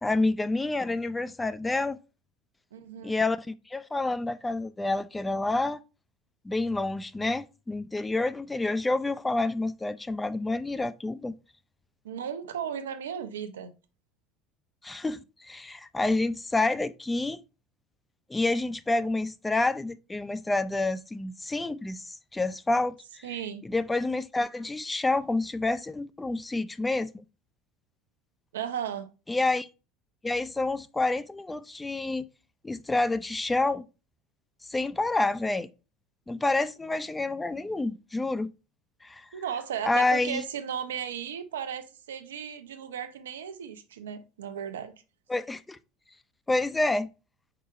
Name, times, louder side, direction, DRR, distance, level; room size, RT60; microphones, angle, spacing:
voice 1, 0.0-2.0 3.0-5.8 6.4-11.3 14.8-17.4 18.3-23.3 23.6-27.2 29.3-29.7 30.2-32.3 32.6-33.8 34.7-35.7 36.3-38.5 39.0-39.3 39.8-40.4 45.3-45.8 46.5-47.1, left 2 dB, 15° left, 0.4 m, -28 dB
voice 2, 2.7-3.2 12.0-13.7 23.2-23.6 28.5-29.1 39.3-44.9, right 8 dB, 90° right, 0.6 m, -35 dB
4.8 x 4.4 x 2.4 m
hypercardioid pair, 85°, 0 cm